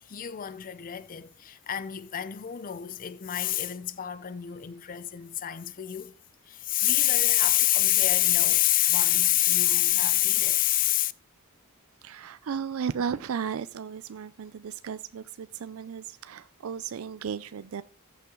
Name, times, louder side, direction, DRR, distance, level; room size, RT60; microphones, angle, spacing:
voice 1, 0.0-6.2 6.5-11.1, left 14 dB, 40° left, 0.4 m, -26 dB
voice 2, 12.0-17.8, right 7 dB, 65° right, 0.4 m, -34 dB
14.5 x 5.7 x 3.7 m
head